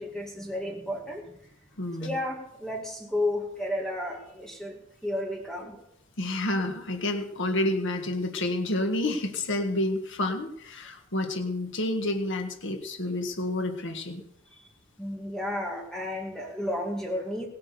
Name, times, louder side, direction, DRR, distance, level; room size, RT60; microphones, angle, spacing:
voice 1, 0.0-1.3 2.0-5.8 14.5-14.6 15.0-17.5, left 1 dB, 5° left, -1 dB, 2.3 m, -32 dB
voice 2, 1.8-2.2 6.2-14.2, left 1 dB, 60° left, 5 dB, 1.7 m, -29 dB
18.5 x 8.6 x 6.9 m, 0.76 s
head